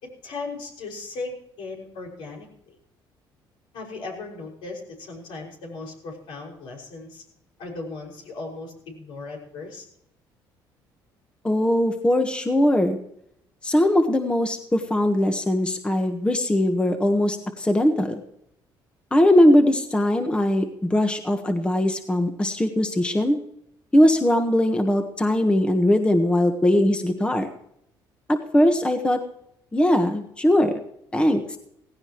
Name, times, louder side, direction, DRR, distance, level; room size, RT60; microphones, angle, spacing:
voice 1, 0.0-2.8 3.7-7.2 7.6-9.8, left 3 dB, 75° left, -1 dB, 5.9 m, -37 dB
voice 2, 11.4-13.0 13.6-18.2 19.1-23.4 23.9-27.5 28.3-29.2 29.7-30.7 31.1-31.6, left 1 dB, 10° left, 5 dB, 1.4 m, -20 dB
17.0 x 16.5 x 3.1 m, 0.74 s
cardioid pair, 110°, 9 cm